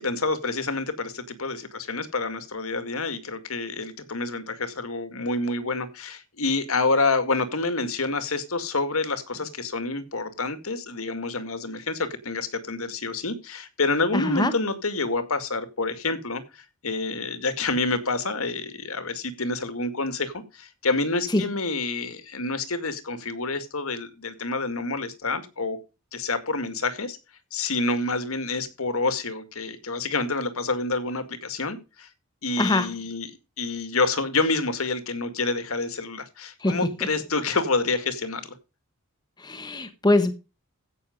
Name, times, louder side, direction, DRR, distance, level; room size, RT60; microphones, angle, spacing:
voice 1, 0.0-25.8 26.1-27.2 27.5-32.1 32.4-38.5, left 3 dB, 70° left, 11 dB, 2.1 m, -28 dB
voice 2, 14.1-14.5 21.3-21.4 32.6-32.9 36.6-36.8 39.4-40.3, left 2 dB, 20° left, 9 dB, 1.2 m, -23 dB
16.0 x 6.6 x 5.2 m, 0.30 s
head